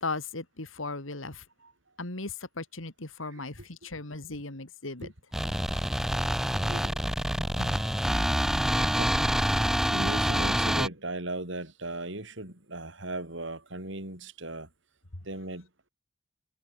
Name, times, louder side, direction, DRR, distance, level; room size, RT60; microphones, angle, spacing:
voice 1, 0.0-1.4 2.0-5.1 7.6-7.8, left 3 dB, 75° left, 2.8 m, -37 dB
sound 1, 5.3-10.9, equal, ahead, 1.3 m, -27 dB
voice 2, 6.6-7.0 7.4-7.5 8.7-14.7 15.2-15.9, right 2 dB, 60° right, 5.0 m, -38 dB
head